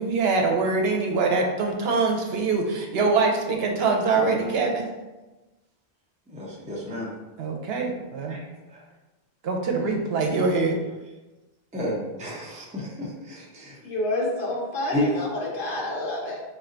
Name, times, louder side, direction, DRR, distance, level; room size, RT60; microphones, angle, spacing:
voice 1, 0.0-4.9 7.4-8.4 9.4-10.8 12.5-12.7, right 4 dB, 80° right, 2 dB, 0.9 m, -24 dB
voice 2, 6.3-7.1 8.3-8.4 8.7-8.8 11.7-13.8 14.9-15.1, left 1 dB, 10° right, -5 dB, 0.6 m, -31 dB
voice 3, 13.8-16.4, left 1 dB, 60° left, -3 dB, 1.0 m, -28 dB
3.4 x 2.6 x 3.8 m, 1.1 s
omnidirectional pair, 1.0 m